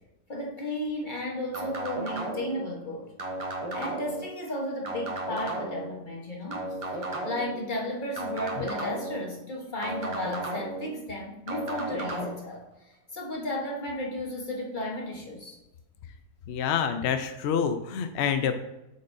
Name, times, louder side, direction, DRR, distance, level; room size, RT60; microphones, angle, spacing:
voice 1, 0.3-3.1 3.7-6.6 7.2-12.6 13.1-15.6, left 1 dB, 35° left, -1 dB, 1.1 m, -34 dB
sound 1, 1.5-2.6 3.2-4.2 4.8-5.9 6.5-7.5 8.2-9.2 9.8-10.9 11.5-12.3, right 2 dB, 35° right, 0.6 m, -34 dB
voice 2, 16.5-18.6, left 7 dB, 70° left, 8 dB, 0.6 m, -27 dB
7.6 x 5.5 x 2.6 m, 0.94 s
omnidirectional pair, 1.6 m